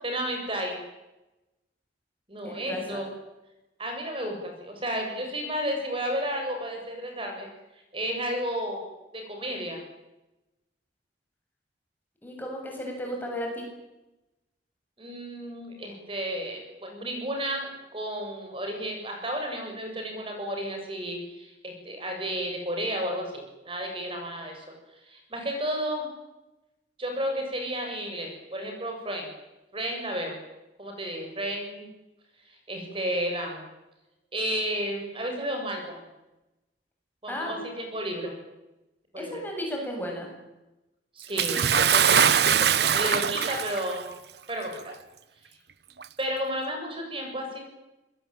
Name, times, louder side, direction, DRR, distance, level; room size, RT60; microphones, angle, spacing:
voice 1, 0.0-0.8 2.3-3.1 3.8-7.5 7.9-8.9 9.1-9.8 15.0-24.6 25.1-26.1 27.0-29.3 29.7-30.4 30.8-31.9 32.5-33.7 34.3-36.0 37.2-38.3 39.1-39.4 41.2-44.0 44.5-44.9 46.2-47.6, equal, 30° right, 2 dB, 7.3 m, -32 dB
voice 2, 2.4-3.0 12.2-13.7 37.3-37.6 39.2-40.3, equal, 10° left, 1 dB, 7.6 m, -34 dB
Bathtub (filling or washing) / Splash splatter, 41.4-44.0 44.9-45.0 46.0-46.1, right 8 dB, 70° right, 1.0 m, -22 dB
26.5 x 21.5 x 9.0 m, 1.0 s
head